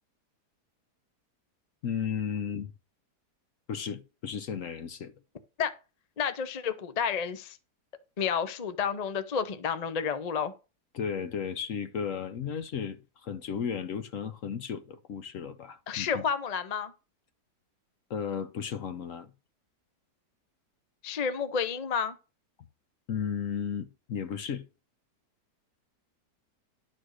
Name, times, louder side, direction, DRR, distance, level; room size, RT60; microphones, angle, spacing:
voice 1, 1.8-2.7 3.7-5.1 10.9-16.2 18.1-19.3 23.1-24.6, left 7 dB, 60° left, 1.0 m, -34 dB
voice 2, 6.2-7.6 8.2-10.5 15.9-16.9 21.0-22.2, left 6 dB, 40° left, 0.6 m, -30 dB
11.0 x 4.4 x 6.4 m
omnidirectional pair, 1.8 m